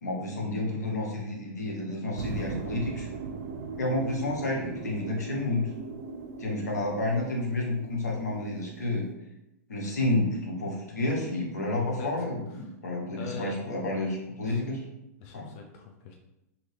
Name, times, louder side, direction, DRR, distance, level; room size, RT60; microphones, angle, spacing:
voice 1, 0.0-3.1 3.8-5.7 6.4-9.1 9.7-14.8 15.3-15.5, left 2 dB, 90° left, -1 dB, 1.0 m, -30 dB
sound 1, 2.2-9.1, right 5 dB, 60° right, 0.4 m, -39 dB
voice 2, 12.0-12.7 13.2-13.5 14.4-14.6 15.2-16.2, left 5 dB, 50° left, 2 dB, 0.5 m, -43 dB
2.7 x 2.7 x 3.2 m, 0.90 s
hypercardioid pair, 120°, 9 cm